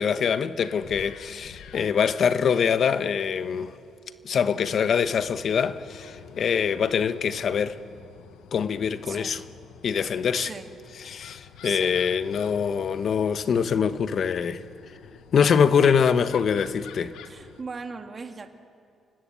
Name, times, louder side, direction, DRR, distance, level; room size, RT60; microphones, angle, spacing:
voice 1, 0.0-3.7 4.2-7.8 8.5-9.4 9.8-10.5 11.1-14.6 15.3-17.2, left 7 dB, 55° left, 1.0 m, -24 dB
sound 1, 0.6-17.6, left 8 dB, 90° left, 1.3 m, -49 dB
voice 2, 9.0-9.4 10.3-10.7 11.6-12.0 17.3-18.5, right 4 dB, 35° right, 2.0 m, -39 dB
29.5 x 19.0 x 8.4 m
cardioid pair, 90°, 0 cm